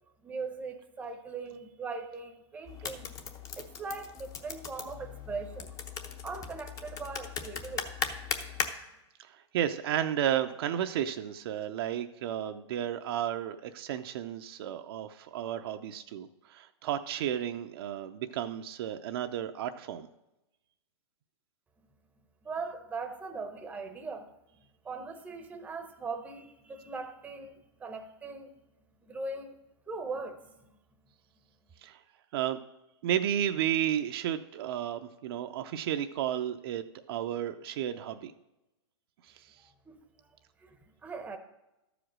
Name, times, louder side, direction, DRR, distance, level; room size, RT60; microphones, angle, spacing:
voice 1, 0.2-3.2 3.6-5.7 6.2-8.0 22.4-24.3 24.8-28.5 29.1-29.6 29.9-30.4 39.9-40.3 40.6-40.8 41.0-41.4, right 4 dB, 10° right, 6 dB, 0.8 m, -40 dB
sound 1, 2.6-8.7, left 6 dB, 20° left, 0.8 m, -38 dB
voice 2, 9.3-20.1 31.8-32.0 32.3-32.6 33.0-38.3, right 10 dB, 55° right, 7 dB, 0.6 m, -32 dB
12.5 x 5.1 x 6.1 m, 0.95 s
hypercardioid pair, 140°, 15 cm